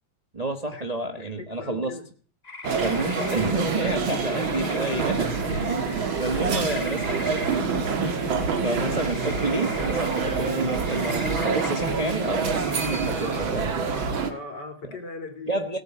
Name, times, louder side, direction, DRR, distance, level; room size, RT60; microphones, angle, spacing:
voice 1, 0.3-1.9 2.8-5.3 5.7-7.5 8.0-13.9 14.9-15.0 15.5-15.8, right 2 dB, 25° right, 5 dB, 1.2 m, -29 dB
voice 2, 1.2-2.1 4.1-4.7 6.2-7.0 14.3-15.8, left 3 dB, 55° left, 5 dB, 3.9 m, -39 dB
sound 1, 2.4-13.1, left 3 dB, 25° left, 1.0 m, -41 dB
sound 2, 2.6-14.3, right 5 dB, 80° right, 2.6 m, -26 dB
17.5 x 8.3 x 8.8 m, 0.44 s
omnidirectional pair, 2.2 m